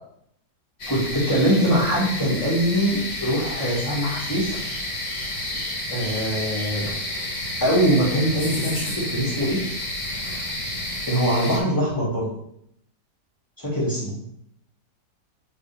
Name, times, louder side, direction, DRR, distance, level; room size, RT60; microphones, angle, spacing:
sound 1, 0.8-11.6, left 1 dB, 60° left, 2.3 m, -30 dB
voice 1, 0.9-4.6 5.9-6.9 7.6-9.6 11.1-12.3 13.6-14.2, equal, 10° left, -8 dB, 2.4 m, -22 dB
8.7 x 3.8 x 3.5 m, 0.73 s
omnidirectional pair, 1.9 m